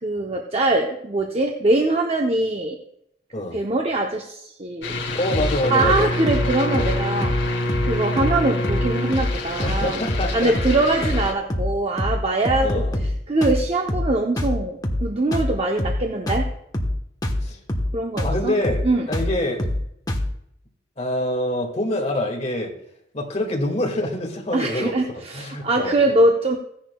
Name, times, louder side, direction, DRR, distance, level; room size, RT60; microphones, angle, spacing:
voice 1, 0.0-2.8 3.5-4.9 5.7-7.3 7.8-10.0 10.3-16.5 17.9-18.5 18.8-19.1 24.5-26.6, right 2 dB, 35° right, 2 dB, 0.8 m, -22 dB
sound 1, 4.8-11.3, left 1 dB, 85° left, 3.3 m, -26 dB
voice 2, 5.1-6.1 6.6-6.9 9.6-10.5 12.6-13.0 17.4-17.6 18.2-19.6 21.0-22.7 23.1-25.9, left 1 dB, 35° left, 0 dB, 2.0 m, -26 dB
sound 2, 5.3-5.5 5.8-6.0 6.3-6.5 6.7-7.0 7.2-7.4 7.7-8.4 8.6-8.9 9.1-9.3 9.6-9.8 10.1-10.3 10.6-10.8 11.0-11.2 11.5-11.7 12.0-12.2 12.5-13.2 13.4-13.6 13.9-14.1 14.4-14.6 14.8-15.1 15.3-15.5 15.8-16.0 16.3-16.5 16.7-17.0 17.2-17.4 17.7-17.9 18.2-18.4 18.6-18.9 19.1-19.3 19.6-19.8 20.1-20.3, left 1 dB, 20° left, 1.1 m, -24 dB
16.0 x 10.0 x 2.3 m, 0.75 s
head